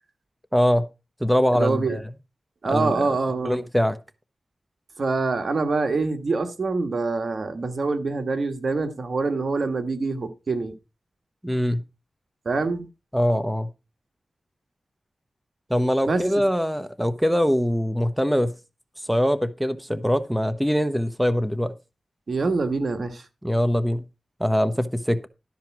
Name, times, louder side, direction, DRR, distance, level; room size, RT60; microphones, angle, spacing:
voice 1, 0.5-0.9 1.2-2.0 2.6-3.0 3.4-4.0 11.4-11.8 13.1-13.7 15.7-18.5 19.1-21.7 23.4-24.0 24.4-25.3, equal, 5° right, 1.0 m, -22 dB
voice 2, 1.5-2.0 2.6-3.6 5.0-10.7 12.4-12.9 16.0-16.3 22.3-23.2, right 3 dB, 65° right, 1.6 m, -25 dB
12.5 x 4.5 x 6.1 m
cardioid pair, 55°, 0 cm